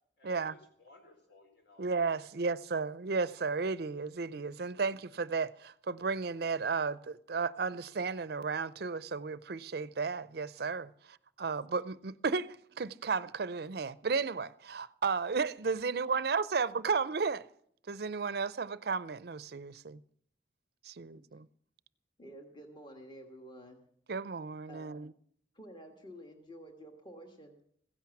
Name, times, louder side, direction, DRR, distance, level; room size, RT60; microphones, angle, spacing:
voice 1, 0.2-1.8 2.1-2.5, left 2 dB, 65° left, 4.3 m, -60 dB
voice 2, 1.8-17.5 17.9-20.0 20.9-21.5 24.1-25.1, right 4 dB, 55° right, 0.5 m, -34 dB
voice 3, 22.2-23.8 24.7-25.0 25.6-27.6, equal, 25° left, 1.6 m, -50 dB
16.0 x 10.5 x 7.1 m
head